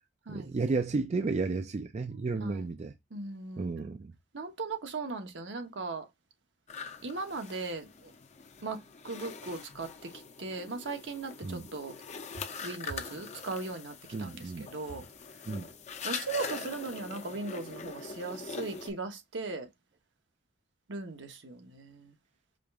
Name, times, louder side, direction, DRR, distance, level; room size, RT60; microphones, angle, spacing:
voice 1, 0.3-2.9 3.6-4.1 11.4-11.7 14.1-14.7 15.5-15.7, right 3 dB, 35° right, 0.4 m, -32 dB
voice 2, 3.1-3.7 4.3-6.1 7.0-8.1 8.6-10.1 10.4-11.9 12.6-15.0 16.0-19.7 20.9-22.1, right 3 dB, 70° right, 1.0 m, -38 dB
sound 1, 6.7-18.9, left 5 dB, 40° left, 0.6 m, -43 dB
5.0 x 2.4 x 3.4 m
head